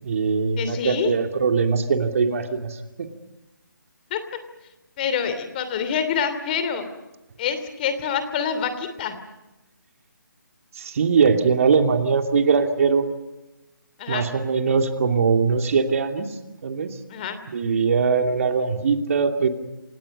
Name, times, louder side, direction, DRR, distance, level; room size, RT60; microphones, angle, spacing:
voice 1, 0.0-3.1 10.8-13.1 14.1-16.3 16.6-16.9 17.5-19.5, right 5 dB, 45° right, 5 dB, 2.7 m, -21 dB
voice 2, 0.6-1.1 4.1-4.2 5.0-6.9 7.4-9.2 14.0-14.2 17.1-17.4, left 7 dB, 25° left, 10 dB, 2.9 m, -26 dB
28.0 x 26.5 x 5.4 m, 0.98 s
figure-of-eight pair, 150°, 11 cm